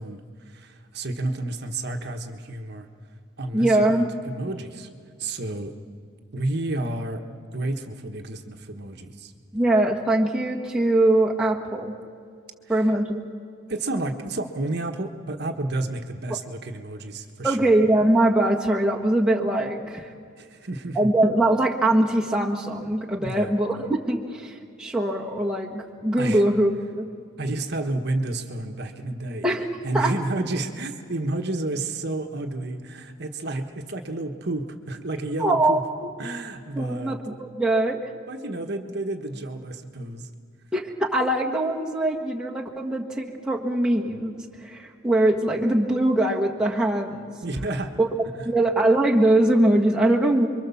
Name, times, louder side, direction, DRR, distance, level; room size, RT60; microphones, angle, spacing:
voice 1, 0.0-2.9 3.4-4.9 5.2-5.7 6.3-7.2 7.5-9.3 12.7-12.8 13.7-17.7 20.4-21.1 23.2-23.6 26.2-26.4 27.4-29.5 29.8-35.8 36.2-37.2 38.3-40.3 47.4-47.9 48.4-48.5, right 2 dB, 55° right, 5 dB, 1.3 m, -31 dB
voice 2, 3.5-4.1 9.5-11.9 12.7-13.2 17.4-20.1 20.9-27.1 29.4-29.6 29.9-30.1 35.4-36.1 36.7-38.0 40.7-44.3 44.6-47.2 48.0-48.1 48.4-50.5, right 1 dB, 5° right, -2 dB, 1.5 m, -22 dB
29.0 x 23.5 x 7.1 m, 2.3 s
head